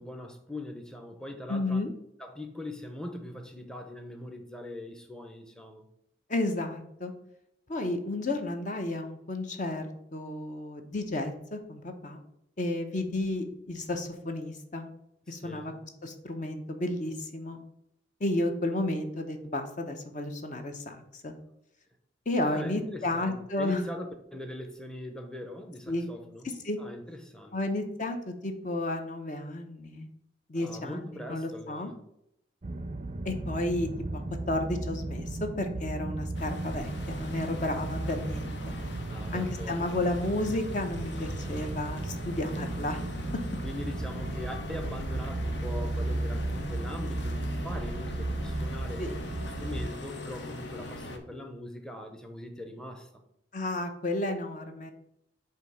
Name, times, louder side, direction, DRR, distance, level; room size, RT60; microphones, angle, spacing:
voice 1, 0.0-1.8 2.2-5.8 15.3-15.8 22.4-26.5 26.8-27.6 30.5-32.0 39.1-39.9 43.6-49.1 49.4-53.2, left 1 dB, 5° left, 0.7 m, -41 dB
voice 2, 1.5-1.9 6.3-7.1 7.7-9.9 10.1-12.2 12.6-14.9 15.3-15.7 16.0-17.6 18.2-21.3 22.3-23.8 25.9-26.1 26.4-26.8 27.5-30.1 30.5-31.9 33.2-34.2 34.5-38.6 39.3-43.0 49.0-49.1 53.5-54.9, left 2 dB, 45° left, 0.8 m, -32 dB
sound 1, 32.6-49.9, right 2 dB, 35° right, 0.4 m, -35 dB
sound 2, 36.3-51.2, left 1 dB, 75° left, 0.9 m, -41 dB
8.0 x 2.8 x 5.4 m
head